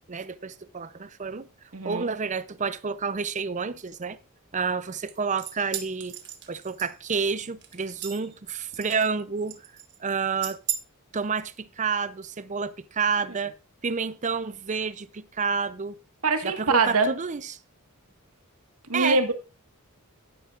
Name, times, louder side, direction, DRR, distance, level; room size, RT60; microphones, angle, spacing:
voice 1, 0.0-1.5 1.8-4.2 4.5-6.2 6.5-9.6 10.0-10.6 11.1-13.5 13.8-16.0 16.4-17.4 18.9-19.2, right 5 dB, 35° right, 0.6 m, -29 dB
voice 2, 1.7-2.1 16.2-17.1 18.9-19.3, right 3 dB, 80° right, 1.7 m, -23 dB
sound 1, 5.1-7.2 7.6-8.4 8.7-9.2 9.5-10.0 10.4-10.8, right 11 dB, 50° right, 1.5 m, -36 dB
12.0 x 10.0 x 2.5 m
head